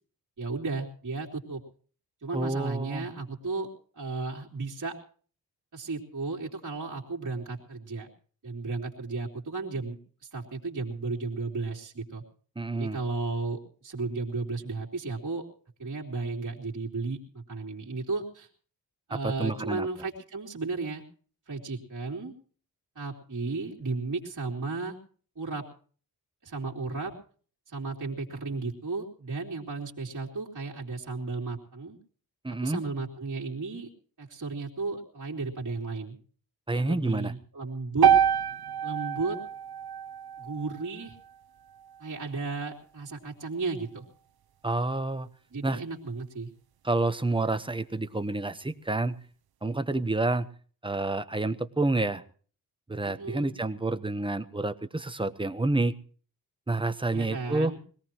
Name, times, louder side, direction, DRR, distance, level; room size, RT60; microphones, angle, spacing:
voice 1, 0.4-1.6 2.2-3.7 3.9-5.0 5.7-8.1 8.4-12.2 12.7-15.5 15.8-18.5 19.1-21.0 21.5-22.3 22.9-25.0 25.3-25.6 26.4-27.1 27.7-32.0 32.6-33.9 34.2-36.2 36.7-38.1 38.8-39.4 40.4-41.2 42.0-44.0 45.5-46.5 53.0-53.5 57.1-57.8, right 3 dB, 50° right, -2 dB, 3.2 m, -34 dB
voice 2, 2.3-3.1 12.6-13.0 19.1-19.9 32.4-32.8 36.7-37.3 44.6-45.3 45.6-45.8 46.8-49.2 49.6-50.5 50.8-52.2 52.9-55.9 56.7-57.7, right 2 dB, 15° right, 10 dB, 1.0 m, -29 dB
sound 1, 38.0-42.2, right 8 dB, 65° right, 0.8 m, -27 dB
22.5 x 18.0 x 3.0 m, 0.43 s
wide cardioid pair, 95°, 39 cm